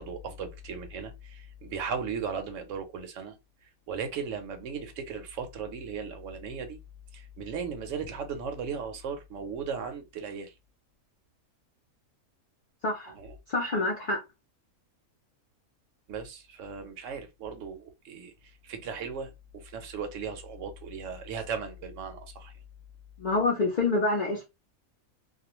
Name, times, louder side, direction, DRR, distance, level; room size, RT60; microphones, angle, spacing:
voice 1, 0.0-3.3 3.9-6.8 7.1-10.5 13.1-13.4 16.1-18.3 18.6-22.5, right 6 dB, 70° right, 0.8 m, -37 dB
voice 2, 12.8-13.1 13.5-14.2 23.2-24.4, left 2 dB, 60° left, 0.4 m, -27 dB
2.4 x 2.1 x 2.8 m
omnidirectional pair, 1.5 m